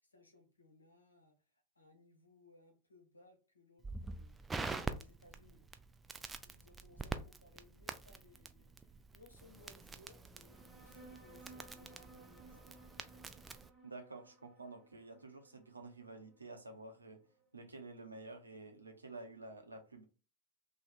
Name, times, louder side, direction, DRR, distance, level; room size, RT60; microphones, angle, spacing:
voice 1, 0.0-5.7 6.1-12.7, left 2 dB, 80° left, 0.9 m, -65 dB
Crackle, 3.8-13.7, right 3 dB, 10° right, 0.3 m, -46 dB
sound 1, 10.5-17.4, right 2 dB, 10° left, 1.3 m, -60 dB
voice 2, 13.8-17.2 17.5-20.0, right 3 dB, 80° right, 0.7 m, -50 dB
3.0 x 2.3 x 4.1 m
figure-of-eight pair, 90°, 0 cm